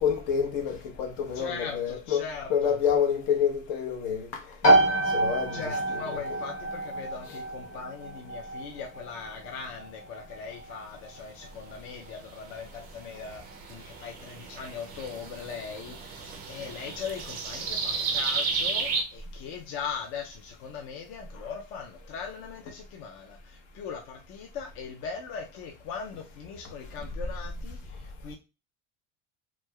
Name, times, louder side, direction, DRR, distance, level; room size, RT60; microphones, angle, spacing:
voice 1, 0.0-2.2 2.5-4.4 5.1-5.6 6.1-6.4, left 7 dB, 65° left, 1.0 m, -28 dB
voice 2, 1.3-2.8 5.5-13.4 13.7-28.0 28.2-28.3, left 6 dB, 40° left, 0.4 m, -40 dB
sound 1, 4.6-19.1, right 1 dB, 25° left, 1.0 m, -30 dB
sound 2, 12.2-19.0, right 4 dB, 30° right, 0.4 m, -33 dB
3.1 x 3.1 x 2.2 m
cardioid pair, 180°, 34 cm